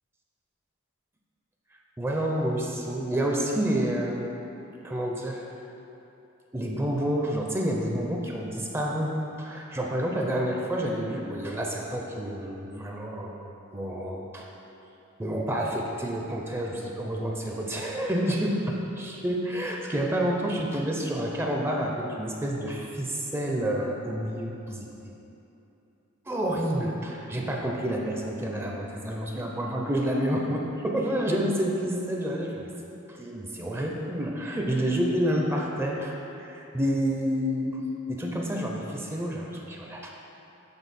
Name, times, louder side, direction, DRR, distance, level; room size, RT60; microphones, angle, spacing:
voice 1, 2.0-4.3 4.8-5.4 6.5-9.1 9.4-13.4 13.7-14.5 15.2-24.9 26.3-32.7 33.1-37.8 38.1-40.1, equal, 10° right, -1 dB, 0.4 m, -29 dB
7.0 x 3.9 x 4.1 m, 2.9 s
head